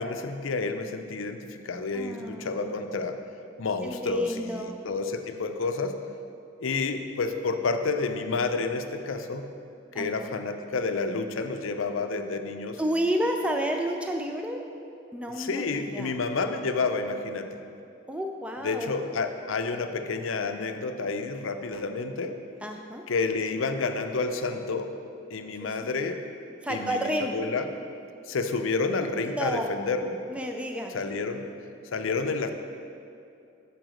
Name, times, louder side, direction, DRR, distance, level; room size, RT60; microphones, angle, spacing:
voice 1, 0.0-3.2 3.6-6.0 6.6-9.5 9.9-12.8 15.4-17.5 18.6-22.4 23.1-24.9 25.3-26.2 26.7-27.7 28.3-30.2 30.9-31.5 31.9-32.5, left 4 dB, 85° left, 7 dB, 0.6 m, -29 dB
voice 2, 1.9-2.7 3.8-4.8 9.9-10.3 12.8-14.6 15.1-16.2 18.1-19.0 22.6-23.0 25.6-25.8 26.6-27.3 29.2-29.7 30.3-31.0, equal, 5° right, 3 dB, 0.4 m, -31 dB
7.8 x 4.7 x 6.3 m, 2.5 s
head